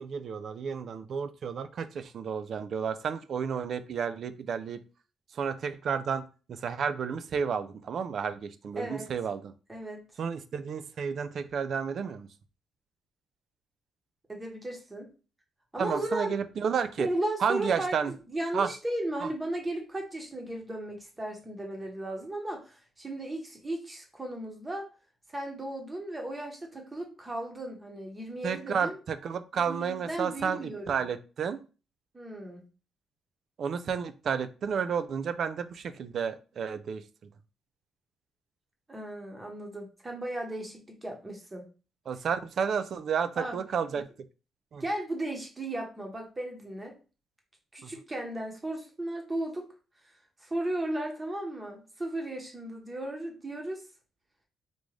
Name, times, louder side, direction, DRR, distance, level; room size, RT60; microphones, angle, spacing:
voice 1, 0.0-4.8 5.4-9.5 10.2-12.3 15.8-17.1 17.4-18.1 18.5-18.7 28.4-31.6 33.6-37.0 42.1-44.1 44.7-44.8 47.8-47.9, right 6 dB, 60° right, 12 dB, 0.3 m, -31 dB
voice 2, 8.8-9.1 9.7-10.1 14.3-15.1 15.7-16.4 17.0-24.9 25.3-29.0 29.5-31.1 32.1-32.6 38.9-41.7 43.3-43.5 44.8-47.0 47.7-49.7 50.4-53.8, right 1 dB, 20° right, 2 dB, 1.0 m, -35 dB
3.7 x 2.5 x 3.1 m, 0.35 s
cardioid pair, 90°, 0 cm